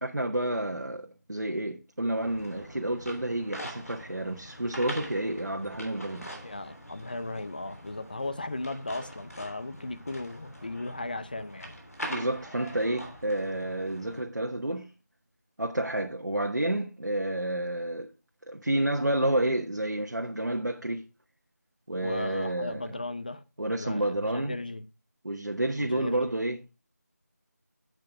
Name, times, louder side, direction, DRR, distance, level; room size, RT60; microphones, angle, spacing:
voice 1, 0.0-6.3 12.1-14.9 15.6-18.1 18.5-21.0 21.9-22.8 23.6-24.6 25.2-26.6, right 1 dB, 85° right, 1.4 m, -30 dB
sound 1, 2.2-14.2, equal, 55° left, 3.2 m, -43 dB
voice 2, 6.4-11.7 22.0-24.8 25.8-26.4, left 2 dB, 30° left, 0.6 m, -36 dB
8.6 x 7.9 x 3.5 m
figure-of-eight pair, 170°, 9 cm